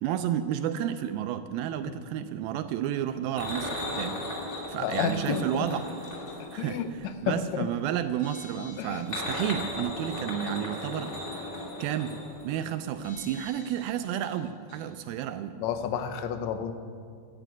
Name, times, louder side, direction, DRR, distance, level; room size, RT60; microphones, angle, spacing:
voice 1, 0.0-4.2 4.7-5.9 6.5-6.8 7.2-11.4 11.8-15.6, right 10 dB, 80° right, 9 dB, 2.3 m, -31 dB
sound 1, 3.3-7.5 8.7-13.0 13.3-13.4 13.7-13.8, left 1 dB, 20° left, 2.5 m, -36 dB
voice 2, 4.8-5.7 6.4-7.7 8.8-9.0 15.6-16.7, left 7 dB, 75° left, 8 dB, 1.6 m, -31 dB
sound 2, 8.1-9.1 9.5-9.6 10.7-10.8 13.0-14.4 14.7-14.8, left 3 dB, 40° left, 4.6 m, -49 dB
13.0 x 9.8 x 9.2 m, 2.1 s
omnidirectional pair, 4.4 m